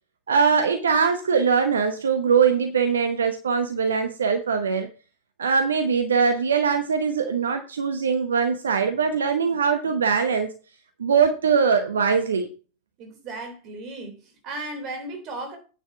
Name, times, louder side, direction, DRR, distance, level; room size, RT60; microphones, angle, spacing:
voice 1, 0.3-4.9 5.4-10.5 11.0-12.5, right 6 dB, 70° right, 0.9 m, -22 dB
voice 2, 13.0-15.6, right 2 dB, 35° right, 3.1 m, -35 dB
9.1 x 6.3 x 4.6 m
figure-of-eight pair, 90°, 0 cm